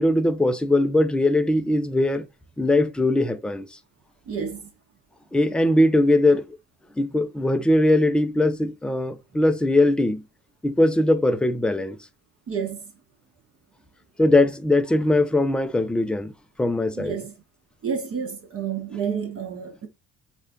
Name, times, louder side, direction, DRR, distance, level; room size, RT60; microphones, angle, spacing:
voice 1, 0.0-2.3 2.6-3.7 5.3-6.4 7.0-10.2 10.6-12.0 14.2-16.3 16.6-17.1, left 1 dB, 5° left, 0.4 m, -20 dB
voice 2, 4.3-4.7 12.5-12.9 17.0-17.3 17.8-19.9, right 7 dB, 35° right, 0.9 m, -30 dB
4.3 x 2.5 x 3.6 m
figure-of-eight pair, 50°, 37 cm